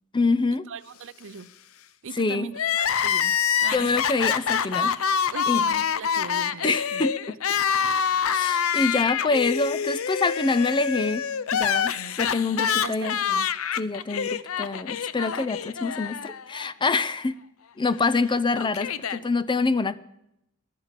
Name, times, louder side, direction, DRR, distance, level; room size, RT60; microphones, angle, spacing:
voice 1, 0.1-0.7 2.1-2.5 3.7-4.9 5.5-5.7 6.6-7.4 8.2-11.3 11.5-13.2 13.8-17.4 17.8-20.0, left 3 dB, 20° left, 0.5 m, -26 dB
voice 2, 0.7-1.5 2.0-4.0 5.3-7.0 12.6-13.5, right 5 dB, 60° right, 0.6 m, -39 dB
Crying sobbing, 2.5-16.7 17.0-17.1 18.1-19.2, left 7 dB, 75° left, 0.6 m, -26 dB
14.5 x 11.5 x 8.2 m
head